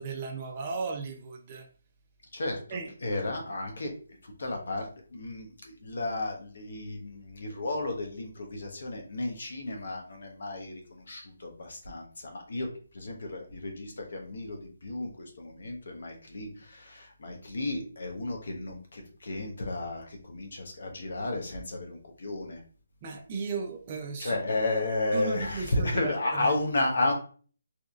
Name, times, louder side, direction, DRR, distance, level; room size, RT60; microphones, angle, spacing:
voice 1, 0.0-1.7 2.7-2.9 23.0-24.4 25.1-26.5, right 4 dB, 25° right, 3 dB, 0.4 m, -35 dB
voice 2, 2.3-3.9 4.2-12.7 12.9-22.6 24.2-27.1, left 2 dB, 60° left, 2 dB, 0.8 m, -33 dB
2.8 x 2.6 x 2.3 m, 0.41 s
hypercardioid pair, 170°, 0 cm